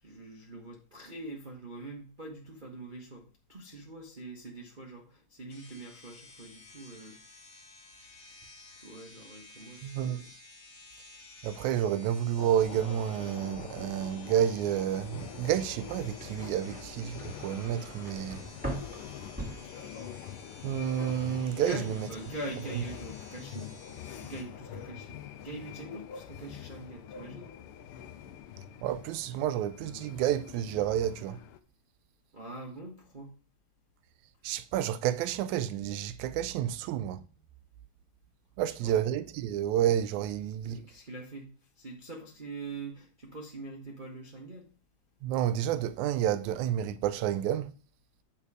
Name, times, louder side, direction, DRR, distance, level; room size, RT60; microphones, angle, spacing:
voice 1, 0.0-7.2 8.8-10.3 21.5-23.7 24.2-25.2 25.4-27.5 32.3-33.3 38.6-39.0 40.6-44.7, right 2 dB, 60° right, 0.5 m, -43 dB
sound 1, 5.5-24.4, left 2 dB, 40° left, 1.0 m, -53 dB
voice 2, 9.8-10.2 11.4-18.4 20.6-22.1 28.8-31.4 34.4-37.2 38.6-40.8 45.2-47.7, right 10 dB, 85° right, 2.0 m, -30 dB
sound 2, 12.4-31.6, left 9 dB, 90° left, 1.2 m, -45 dB
sound 3, 16.2-20.3 20.7-21.2, right 1 dB, 5° right, 1.5 m, -42 dB
8.7 x 4.7 x 4.8 m
omnidirectional pair, 3.4 m